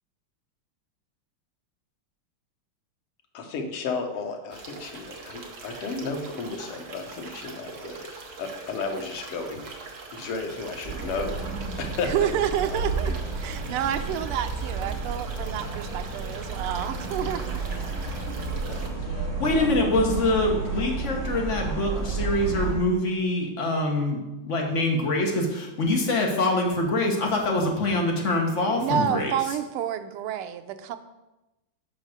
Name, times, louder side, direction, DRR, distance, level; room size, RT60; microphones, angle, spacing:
voice 1, 3.3-8.1 8.4-9.7 10.1-11.3 11.8-12.1 12.7-13.3 18.6-18.9 19.7-19.8, left 4 dB, 90° left, 4 dB, 2.0 m, -33 dB
sound 1, 4.5-18.9, right 4 dB, 50° right, 1.4 m, -42 dB
sound 2, 10.8-22.7, right 4 dB, 35° right, 1.9 m, -31 dB
voice 2, 12.0-13.1 13.4-17.6 28.8-31.0, right 9 dB, 85° right, 9 dB, 1.6 m, -29 dB
voice 3, 19.4-29.3, left 2 dB, 40° left, 0 dB, 1.3 m, -24 dB
6.1 x 5.5 x 6.5 m, 1.0 s
omnidirectional pair, 2.4 m